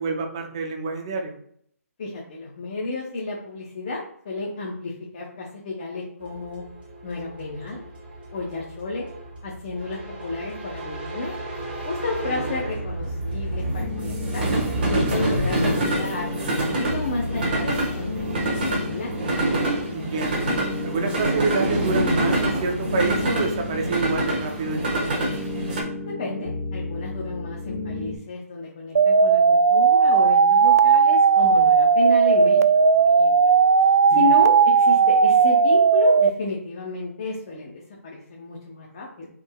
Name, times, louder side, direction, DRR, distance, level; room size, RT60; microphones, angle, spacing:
voice 1, 0.0-1.3 12.3-12.8 19.9-20.5 20.8-25.3 34.1-34.3, right 4 dB, 20° right, 3 dB, 0.5 m, -28 dB
voice 2, 2.0-4.0 4.2-6.6 7.0-7.8 8.3-9.1 9.4-11.3 11.8-14.4 14.9-19.1 26.2-32.7 33.0-33.6 34.1-39.3, left 3 dB, 25° left, -2 dB, 0.7 m, -31 dB
sound 1, 6.3-25.8, right 1 dB, 40° right, 1.3 m, -27 dB
sound 2, 13.8-28.2, left 2 dB, 50° left, 1.1 m, -33 dB
sound 3, 29.0-36.3, right 5 dB, 75° right, 0.4 m, -16 dB
5.6 x 3.7 x 2.2 m, 0.66 s
hypercardioid pair, 175°, 8 cm